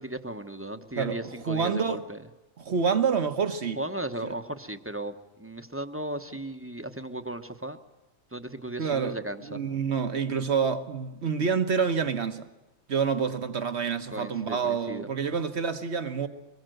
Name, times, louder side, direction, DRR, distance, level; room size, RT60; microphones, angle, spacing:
voice 1, 0.0-2.2 3.8-7.8 8.3-9.6 14.1-15.1, right 1 dB, 10° right, 1.0 m, -36 dB
voice 2, 1.5-2.0 2.6-3.8 4.2-4.3 8.8-12.5 12.9-16.3, right 6 dB, 65° right, 1.5 m, -27 dB
23.5 x 20.5 x 7.8 m
omnidirectional pair, 1.2 m